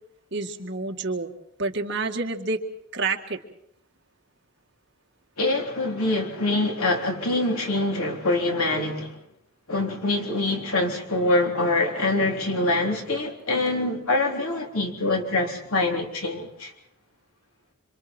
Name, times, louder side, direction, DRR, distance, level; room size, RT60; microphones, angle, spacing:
voice 1, 0.3-1.3 1.6-2.6 2.9-3.4, right 3 dB, 55° right, 2.0 m, -28 dB
voice 2, 5.4-9.2 9.7-16.7, left 2 dB, 85° left, 3.6 m, -25 dB
26.5 x 26.5 x 4.5 m
head